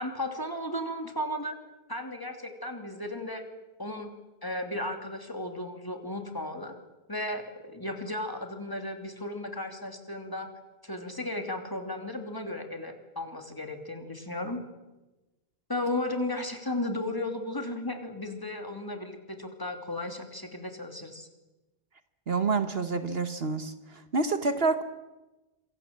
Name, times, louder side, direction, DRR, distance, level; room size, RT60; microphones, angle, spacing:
voice 1, 0.0-1.6 1.9-3.4 3.8-4.1 4.4-6.7 7.1-10.5 10.8-14.6 15.7-21.3, left 1 dB, 20° left, 4 dB, 2.9 m, -35 dB
voice 2, 22.3-24.8, right 4 dB, 60° right, 10 dB, 1.5 m, -28 dB
27.0 x 24.0 x 7.5 m, 1.1 s
omnidirectional pair, 1.2 m